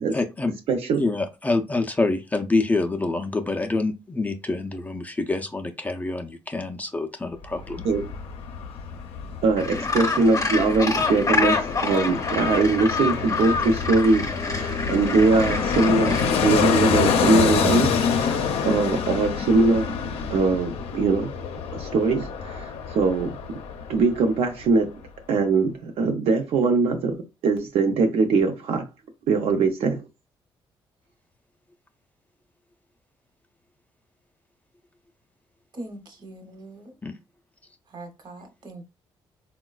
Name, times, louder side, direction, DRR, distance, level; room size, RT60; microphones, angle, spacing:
voice 1, 0.1-0.5 1.0-7.8 37.0-37.2, left 3 dB, 15° left, 0.4 m, -26 dB
voice 2, 0.7-1.0 7.8-8.0 9.4-20.0 20.3-21.3 21.7-23.4 23.9-24.9 25.3-27.2 27.4-28.9 29.3-30.0, right 3 dB, 80° right, 0.6 m, -22 dB
Fixed-wing aircraft airplane, 7.4-24.4 24.7-24.8, left 6 dB, 85° left, 0.5 m, -27 dB
Gull seagull, 9.6-16.3, left 3 dB, 35° left, 0.8 m, -27 dB
voice 3, 35.7-37.0 37.9-38.9, right 2 dB, 45° right, 0.9 m, -41 dB
3.8 x 2.2 x 2.3 m
cardioid pair, 105°, 10 cm